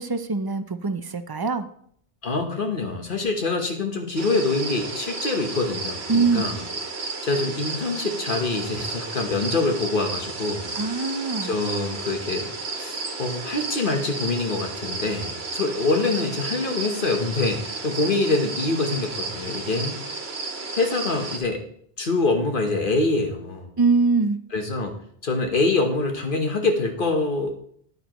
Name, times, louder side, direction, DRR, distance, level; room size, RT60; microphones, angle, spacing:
voice 1, 0.0-1.7 6.1-6.6 10.7-11.5 23.8-24.4, right 4 dB, 35° right, 10 dB, 0.4 m, -23 dB
voice 2, 2.2-6.6 7.2-10.7 11.4-12.5 12.8-20.0 20.8-21.6 22.0-23.7 24.5-25.0 25.2-27.5, left 3 dB, 55° left, 4 dB, 1.3 m, -25 dB
sound 1, 4.1-21.4, right 3 dB, 75° right, 1.5 m, -33 dB
9.7 x 9.4 x 3.0 m, 0.64 s
omnidirectional pair, 1.0 m